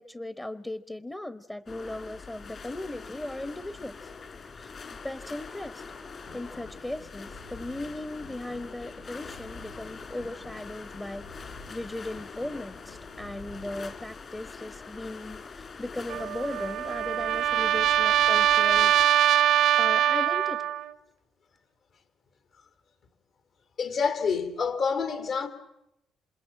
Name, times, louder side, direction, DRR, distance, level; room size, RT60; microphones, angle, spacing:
voice 1, 0.0-4.1 4.4-5.8 6.3-18.9 19.8-20.7, left 1 dB, 15° left, 1.1 m, -37 dB
sound 1, 1.7-19.0, left 4 dB, 45° left, 3.5 m, -44 dB
sound 2, 6.3-14.1, left 3 dB, 85° left, 3.0 m, -50 dB
Trumpet, 16.1-20.9, right 11 dB, 80° right, 1.1 m, -23 dB
voice 2, 23.8-25.5, left 5 dB, 65° left, 3.6 m, -27 dB
28.0 x 26.5 x 7.4 m
cardioid pair, 90°, 0 cm